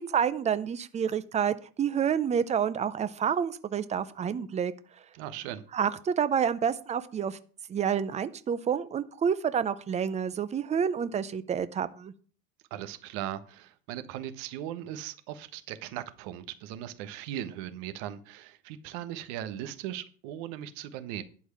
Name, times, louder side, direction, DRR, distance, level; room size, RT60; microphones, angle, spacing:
voice 1, 0.1-4.7 5.7-7.4 7.7-12.1, right 7 dB, 15° right, 15 dB, 0.5 m, -28 dB
voice 2, 5.1-5.6 12.7-21.2, right 11 dB, 60° right, 12 dB, 1.3 m, -38 dB
11.5 x 4.6 x 8.3 m, 0.44 s
supercardioid pair, 130°, 45 cm